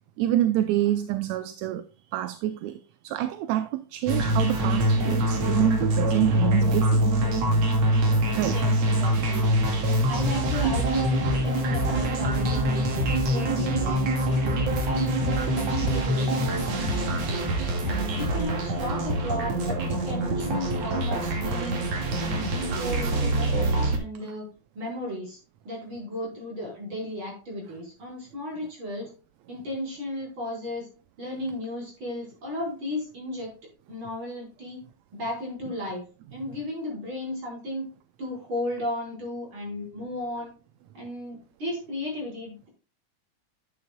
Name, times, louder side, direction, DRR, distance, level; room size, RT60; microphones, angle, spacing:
voice 1, 0.2-1.8 2.1-7.1 8.4-8.6 17.0-17.1, right 12 dB, 75° right, 1.8 m, -26 dB
sound 1, 4.1-24.0, right 1 dB, 60° right, 2.9 m, -25 dB
voice 2, 8.4-9.4 9.9-12.9 13.2-14.0 14.4-17.5 17.8-21.8 22.2-24.5 24.8-25.4 25.7-29.1 29.5-30.9 31.2-33.5 33.9-34.8 35.1-36.0 36.3-37.9 38.2-40.5 40.9-42.7, left 1 dB, 40° right, 5.5 m, -34 dB
sound 2, 10.5-18.4, left 1 dB, 55° left, 2.3 m, -32 dB
11.0 x 9.6 x 2.2 m
omnidirectional pair, 3.5 m